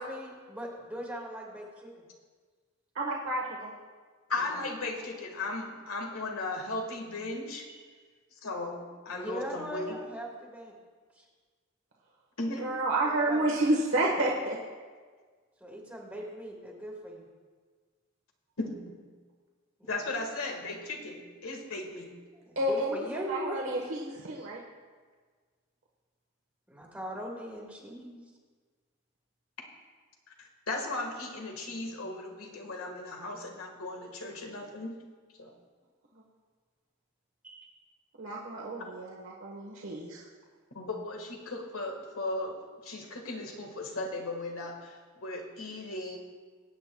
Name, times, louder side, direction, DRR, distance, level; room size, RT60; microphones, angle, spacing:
voice 1, 0.0-1.9 4.4-4.6 7.7-7.8 9.1-10.7 11.1-11.2 13.0-13.5 15.6-17.3 19.8-20.1 22.3-23.6 24.3-24.5 26.7-28.2 37.4-37.7, equal, 5° right, -2 dB, 1.3 m, -40 dB
voice 2, 2.9-3.7 12.6-14.6 22.6-24.6 38.2-40.2, right 1 dB, 70° right, -2 dB, 1.1 m, -30 dB
voice 3, 4.3-7.7 8.4-10.0 12.4-12.8 18.6-19.1 19.9-22.1 30.4-35.0 35.4-35.5 38.8-39.0 40.7-46.2, left 2 dB, 90° left, 2 dB, 1.5 m, -36 dB
20.5 x 8.7 x 2.2 m, 1.5 s
head